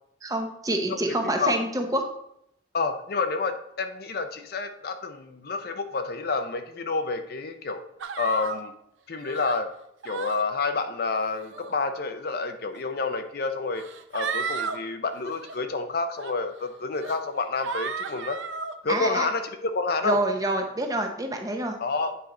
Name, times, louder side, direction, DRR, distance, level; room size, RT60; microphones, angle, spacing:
voice 1, 0.2-2.0 18.9-19.2 20.0-21.8, right 1 dB, 20° right, 4 dB, 0.7 m, -27 dB
voice 2, 0.9-1.6 2.7-7.8 8.2-8.7 9.1-9.7 10.0-13.8 14.1-18.4 18.8-20.2 21.8-22.2, left 4 dB, 50° left, 7 dB, 0.5 m, -29 dB
sound 1, 8.0-8.6 9.2-9.6 10.0-10.4 11.3-11.7 12.7-12.8 13.8-14.8 15.2-15.5 16.2-16.3 16.9-17.2 17.6-18.7, right 5 dB, 80° right, 0.6 m, -33 dB
8.5 x 4.5 x 3.7 m, 0.76 s
head